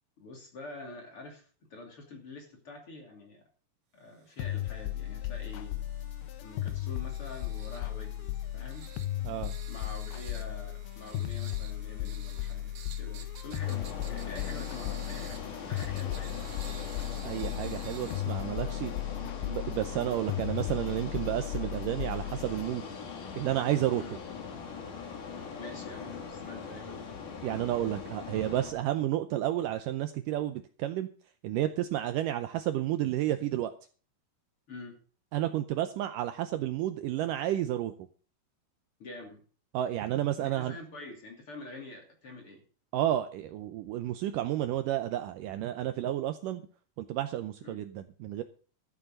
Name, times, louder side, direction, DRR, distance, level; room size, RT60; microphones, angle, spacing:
voice 1, 0.2-3.4 3.9-5.8 6.4-8.9 9.7-15.4 15.7-16.4 24.0-24.2 25.6-27.2 34.7-35.0 39.0-39.4 40.4-42.6 47.6-47.8, left 2 dB, 40° left, 2 dB, 3.3 m, -46 dB
sound 1, 4.3-19.2, right 8 dB, 60° right, 2.0 m, -53 dB
sound 2, 4.4-22.7, left 13 dB, 85° left, 2.8 m, -36 dB
sound 3, 13.6-28.7, left 6 dB, 60° left, 3.5 m, -41 dB
voice 2, 17.2-22.9 23.4-24.0 27.4-31.1 31.4-33.7 35.3-37.9 39.7-40.8 42.9-46.6 47.0-48.4, right 13 dB, 80° right, 9 dB, 2.0 m, -31 dB
14.0 x 7.3 x 6.5 m, 0.40 s
omnidirectional pair, 4.4 m